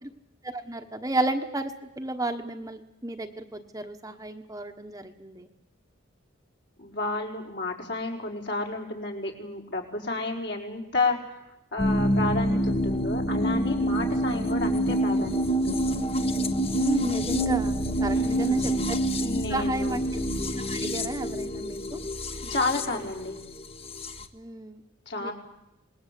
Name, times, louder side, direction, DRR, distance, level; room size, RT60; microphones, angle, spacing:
voice 1, 0.4-5.5 16.7-19.0 19.5-20.0 20.7-22.0 24.3-24.8 25.2-25.3, right 1 dB, 15° right, 5 dB, 1.2 m, -32 dB
voice 2, 6.8-11.3 11.7-15.9 18.1-18.8 19.2-20.0 22.5-23.3 25.1-25.3, left 3 dB, 60° left, 1 dB, 4.8 m, -31 dB
sound 1, 11.8-24.2, equal, 30° left, 1.2 m, -27 dB
26.5 x 20.5 x 8.5 m, 0.89 s
head